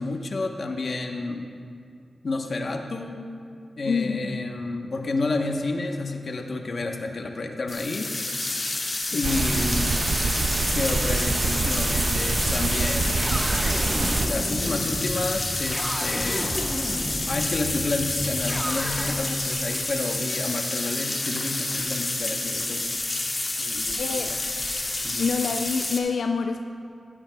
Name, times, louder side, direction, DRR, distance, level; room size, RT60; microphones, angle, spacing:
voice 1, 0.0-1.5 2.2-3.2 3.8-8.1 9.1-9.9 10.7-13.5 14.2-16.6 17.3-23.0 23.6-24.4 25.0-25.3, left 2 dB, 50° left, 3 dB, 1.0 m, -30 dB
voice 2, 3.8-4.5 9.1-9.2 24.0-24.3 25.2-26.6, left 5 dB, 85° left, 5 dB, 0.4 m, -27 dB
sound 1, 7.7-26.0, left 2 dB, 35° left, 1.3 m, -29 dB
sound 2, 9.2-14.3, right 3 dB, 40° right, 0.4 m, -26 dB
sound 3, 12.8-19.1, equal, 10° right, 1.0 m, -32 dB
16.5 x 14.5 x 2.3 m, 2.4 s
wide cardioid pair, 135°, 0 cm